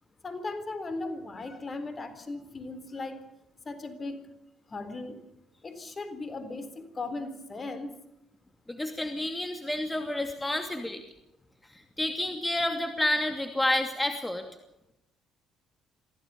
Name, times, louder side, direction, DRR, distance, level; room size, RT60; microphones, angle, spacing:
voice 1, 0.2-3.2 3.6-4.3 4.7-5.2 5.6-8.0, left 2 dB, 35° left, 11 dB, 3.9 m, -37 dB
voice 2, 8.7-11.0 11.7-14.5, left 1 dB, 10° left, 6 dB, 2.7 m, -29 dB
25.0 x 16.5 x 7.0 m, 0.85 s
supercardioid pair, 60°, 0 cm